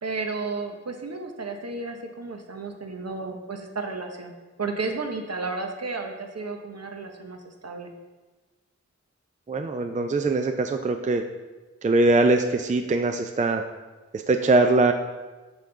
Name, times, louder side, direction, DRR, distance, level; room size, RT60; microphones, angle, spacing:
voice 1, 0.0-4.3 4.6-7.9, right 3 dB, 55° right, 4 dB, 0.8 m, -33 dB
voice 2, 9.5-11.2 11.8-13.6 14.1-14.9, right 2 dB, 25° right, 6 dB, 0.3 m, -22 dB
6.2 x 5.7 x 3.8 m, 1.2 s
wide cardioid pair, 70°, 30 cm